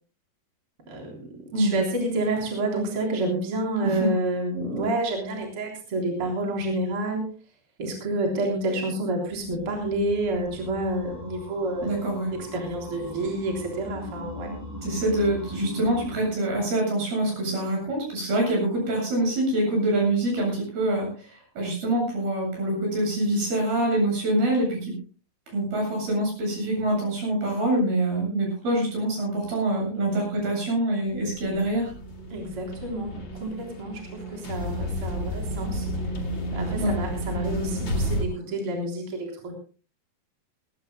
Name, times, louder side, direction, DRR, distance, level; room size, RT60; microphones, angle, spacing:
voice 1, 0.9-7.2 7.8-11.9 12.5-14.5 32.3-35.9 36.5-39.5, right 1 dB, 35° right, 0 dB, 4.2 m, -29 dB
voice 2, 3.8-4.1 11.8-12.3 14.8-24.9 25.5-31.9 36.8-36.9, right 1 dB, 75° right, 0 dB, 9.8 m, -25 dB
sound 1, 9.3-16.1, left 1 dB, 5° right, 6.6 m, -40 dB
sound 2, 31.2-38.2, equal, 35° left, 2.8 m, -31 dB
20.0 x 19.0 x 2.3 m, 0.37 s
omnidirectional pair, 4.4 m